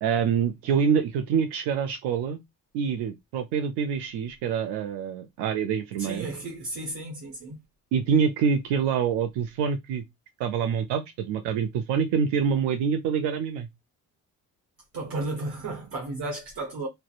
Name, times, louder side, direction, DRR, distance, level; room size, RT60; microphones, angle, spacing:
voice 1, 0.0-2.4 2.7-6.3 7.9-10.0 10.4-13.7, right 7 dB, 70° right, 0.5 m, -26 dB
voice 2, 6.0-7.6 14.9-16.9, right 2 dB, 55° right, 1.0 m, -33 dB
2.5 x 2.1 x 2.3 m
hypercardioid pair, 45°, 42 cm